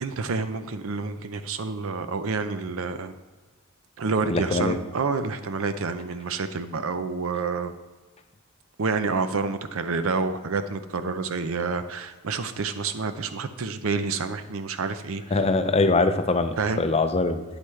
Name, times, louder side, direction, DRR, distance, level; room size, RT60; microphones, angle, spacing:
voice 1, 0.0-3.1 4.0-7.7 8.8-15.4 16.6-16.8, right 4 dB, 70° right, 10 dB, 0.6 m, -28 dB
voice 2, 4.3-4.8 15.3-17.4, left 3 dB, 30° left, 9 dB, 0.5 m, -23 dB
9.0 x 8.1 x 3.2 m, 1.3 s
head